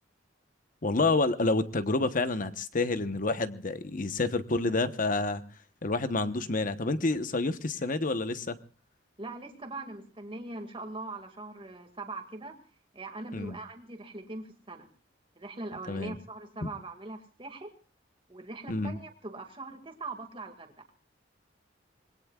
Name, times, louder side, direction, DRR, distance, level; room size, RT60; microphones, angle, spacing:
voice 1, 0.8-5.4 5.8-8.6 13.3-13.6 15.9-16.2 16.6-16.7 18.7-19.0, left 3 dB, 45° left, 11 dB, 1.0 m, -28 dB
voice 2, 9.2-12.6 12.9-14.9 15.4-17.7 18.3-20.7, right 2 dB, 30° right, 4 dB, 2.1 m, -41 dB
26.0 x 21.0 x 2.4 m, 0.37 s
head